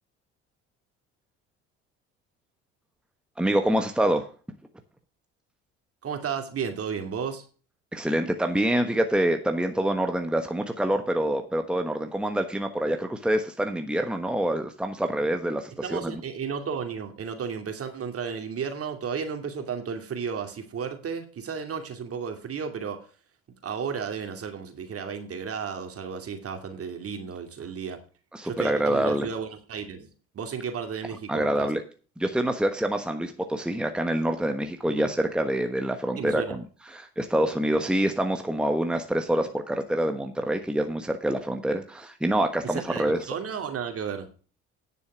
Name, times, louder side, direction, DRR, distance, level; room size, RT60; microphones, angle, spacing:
voice 1, 3.4-4.3 7.9-16.1 28.3-29.3 31.3-31.8 32.2-36.6 36.9-43.2, right 1 dB, 5° right, 6 dB, 1.2 m, -26 dB
voice 2, 6.0-7.4 15.8-23.1 23.6-28.0 28.4-30.1 30.3-31.7 34.9-35.1 36.2-36.6 42.6-44.3, right 6 dB, 45° right, 5 dB, 2.5 m, -33 dB
10.0 x 7.0 x 6.1 m, 0.38 s
hypercardioid pair, 65°, 32 cm